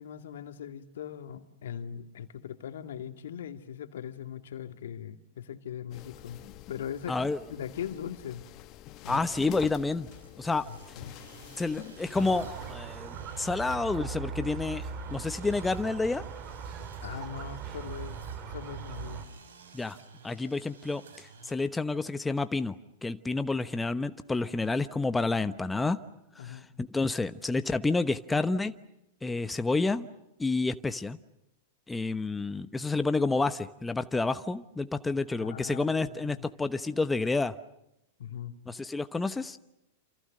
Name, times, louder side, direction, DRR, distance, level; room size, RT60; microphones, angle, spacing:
voice 1, 0.0-6.4 6.7-7.2 7.5-8.4 9.0-9.2 11.0-11.1 17.0-18.2 18.5-19.2 26.4-26.7 35.4-36.4 38.2-38.6, left 9 dB, 70° left, 8 dB, 2.2 m, -40 dB
sound 1, 5.9-12.7, left 14 dB, 40° left, 1.6 m, -46 dB
voice 2, 7.1-7.4 9.1-10.1 10.4-10.6 11.6-16.2 19.7-20.0 20.2-26.0 26.3-28.7 29.2-30.1 30.4-31.2 31.9-37.5 38.7-39.6, left 3 dB, 10° left, 11 dB, 1.1 m, -29 dB
sound 2, 9.9-21.6, right 5 dB, 75° right, 6.4 m, -53 dB
Squeak, 12.1-19.2, right 6 dB, 40° right, 3.7 m, -40 dB
28.5 x 28.0 x 6.6 m, 0.85 s
hypercardioid pair, 100°, 0 cm